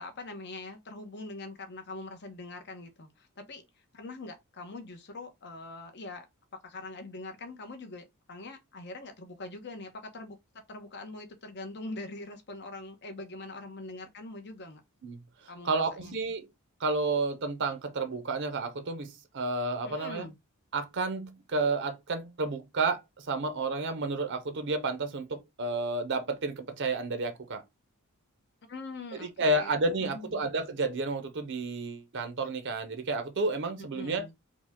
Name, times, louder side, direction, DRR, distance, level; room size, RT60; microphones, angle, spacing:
voice 1, 0.0-3.7 3.9-6.3 6.5-10.4 10.7-14.8 15.5-16.2 19.8-20.3 28.7-30.3 33.8-34.3, left 2 dB, 50° left, 0.9 m, -43 dB
voice 2, 15.6-16.5 16.8-20.3 20.7-27.6 29.4-34.3, right 3 dB, 55° right, 0.7 m, -31 dB
5.1 x 2.3 x 3.5 m
head